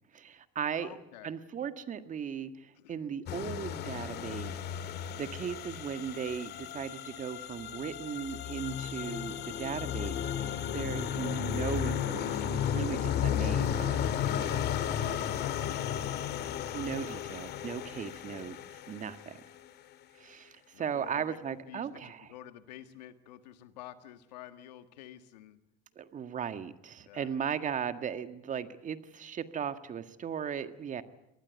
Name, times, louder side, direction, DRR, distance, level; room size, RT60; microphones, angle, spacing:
voice 1, 0.1-1.0 1.2-4.6 5.2-10.2 10.7-14.1 14.3-14.4 16.7-18.6 18.9-19.4 20.2-22.3 25.9-31.0, right 7 dB, 40° right, 10 dB, 1.7 m, -37 dB
voice 2, 0.8-1.3 2.7-3.0 10.5-10.9 13.1-13.9 14.1-14.5 15.0-18.4 20.7-25.6 27.0-27.3, left 12 dB, 90° left, 10 dB, 1.7 m, -51 dB
sound 1, 3.3-19.4, left 9 dB, 55° left, 1.9 m, -34 dB
24.0 x 19.5 x 8.2 m, 0.87 s
supercardioid pair, 90°, 21 cm